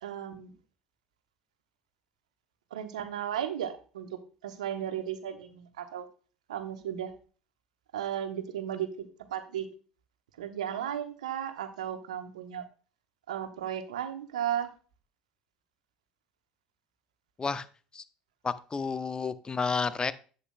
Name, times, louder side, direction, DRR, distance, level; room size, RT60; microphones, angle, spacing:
voice 1, 0.0-0.5 2.7-6.0 6.5-7.1 7.9-9.7 10.4-12.6 13.3-14.7, right 10 dB, 70° right, 9 dB, 1.0 m, -35 dB
voice 2, 18.4-20.1, left 5 dB, 20° left, 15 dB, 0.7 m, -31 dB
11.0 x 8.2 x 2.2 m, 0.38 s
figure-of-eight pair, 60°, 4 cm